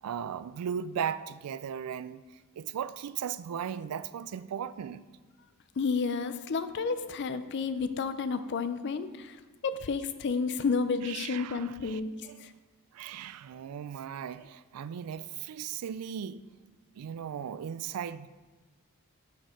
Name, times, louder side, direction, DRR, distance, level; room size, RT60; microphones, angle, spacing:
voice 1, 0.0-2.2 2.6-5.0 11.0-12.0 12.3-12.5 12.9-16.4 17.0-18.3, right 8 dB, 80° right, 0.3 m, -37 dB
voice 2, 5.8-12.1 12.4-12.5, left 5 dB, 50° left, 0.5 m, -31 dB
6.5 x 6.4 x 5.0 m
head